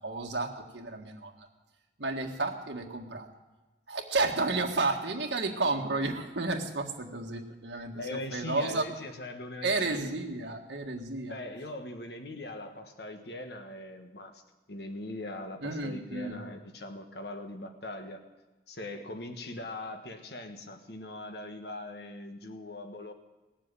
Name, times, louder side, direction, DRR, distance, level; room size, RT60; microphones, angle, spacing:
voice 1, 0.0-1.5 2.0-3.3 3.9-8.8 9.6-11.4 15.6-16.4, right 3 dB, 90° right, 1 dB, 1.7 m, -32 dB
voice 2, 7.8-10.1 11.3-14.4 14.7-18.2 18.7-23.1, left 1 dB, 65° left, 6 dB, 1.5 m, -41 dB
19.0 x 7.5 x 8.9 m, 1.2 s
head